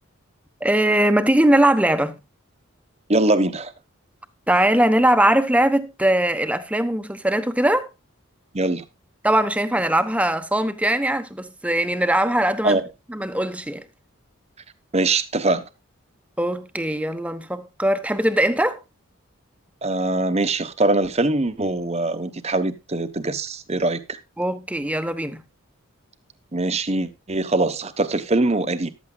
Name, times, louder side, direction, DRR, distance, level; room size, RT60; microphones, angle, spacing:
voice 1, 0.6-2.2 4.5-7.9 9.2-12.8 13.1-13.8 16.4-18.8 24.4-25.4, right 1 dB, 5° right, 1.0 m, -20 dB
voice 2, 3.1-3.7 8.5-8.8 12.6-12.8 14.9-15.6 19.8-24.2 26.5-28.9, right 2 dB, 30° right, 1.1 m, -22 dB
14.5 x 12.0 x 2.3 m
head